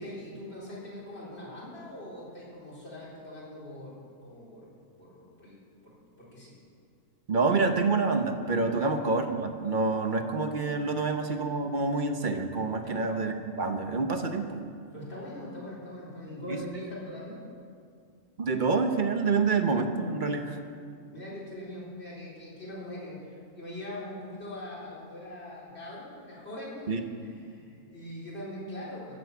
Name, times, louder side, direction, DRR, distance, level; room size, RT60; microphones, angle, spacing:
voice 1, 0.0-6.5 8.7-8.9 12.8-13.0 14.9-17.4 20.4-20.6 21.1-29.1, left 1 dB, 45° left, -6 dB, 4.1 m, -42 dB
voice 2, 7.3-14.6 16.5-16.6 18.4-20.6 26.9-27.0, right 4 dB, 40° right, 6 dB, 1.0 m, -27 dB
15.5 x 7.6 x 8.0 m, 2.3 s
omnidirectional pair, 1.5 m